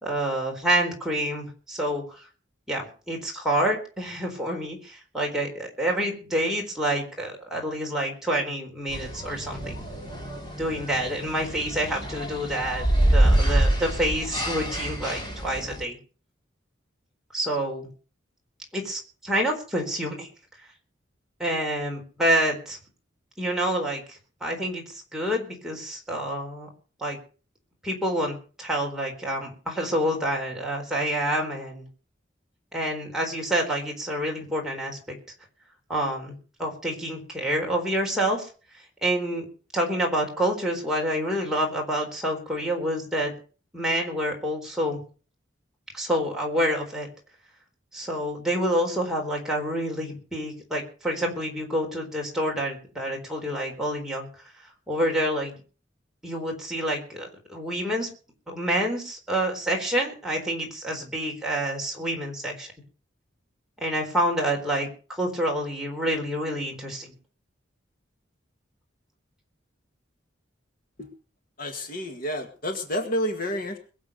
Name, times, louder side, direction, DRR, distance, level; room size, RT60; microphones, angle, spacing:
voice 1, 0.0-2.2 2.7-9.7 10.6-12.9 13.1-16.0 17.3-17.9 18.7-20.3 21.4-22.8 23.4-26.7 27.0-27.2 27.8-31.9 32.7-35.2 35.9-38.5 39.0-39.4 39.7-43.3 43.7-45.0 45.9-47.1 47.9-54.3 54.9-55.6 56.2-58.1 58.5-62.7 63.8-64.9 65.2-67.1, right 1 dB, ahead, -2 dB, 4.1 m, -28 dB
sound 1, 8.9-15.8, right 1 dB, 25° left, 3.4 m, -26 dB
voice 2, 71.6-73.8, equal, 45° left, 4 dB, 1.9 m, -29 dB
22.0 x 7.7 x 6.8 m, 0.39 s
head